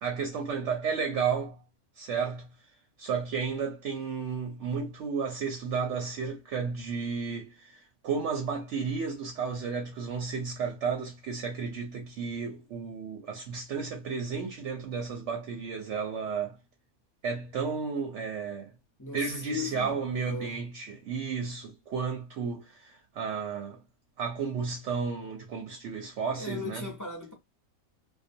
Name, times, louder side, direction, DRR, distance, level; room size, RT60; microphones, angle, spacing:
voice 1, 0.0-1.6 2.0-2.5 3.0-16.6 17.2-18.7 19.1-23.8 24.2-26.9, right 5 dB, 65° right, 0.8 m, -33 dB
voice 2, 19.0-20.6 26.3-27.3, left 4 dB, 20° left, 0.5 m, -37 dB
2.3 x 2.2 x 2.5 m
omnidirectional pair, 1.5 m